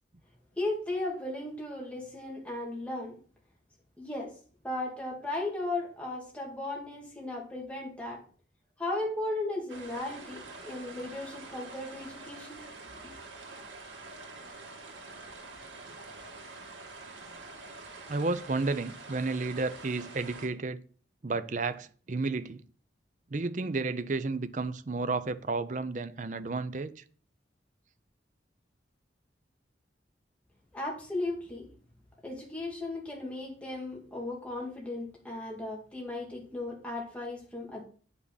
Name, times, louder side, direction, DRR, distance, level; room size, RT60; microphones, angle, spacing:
voice 1, 0.6-3.2 4.0-4.3 4.6-8.2 8.8-12.6 30.7-31.7 32.2-37.8, left 2 dB, 5° left, 2.1 m, -36 dB
sound 1, 9.7-20.5, right 3 dB, 85° right, 2.1 m, -46 dB
voice 2, 18.1-20.8 21.2-22.6 23.3-26.9, right 3 dB, 40° right, 0.5 m, -32 dB
9.5 x 5.9 x 3.9 m
head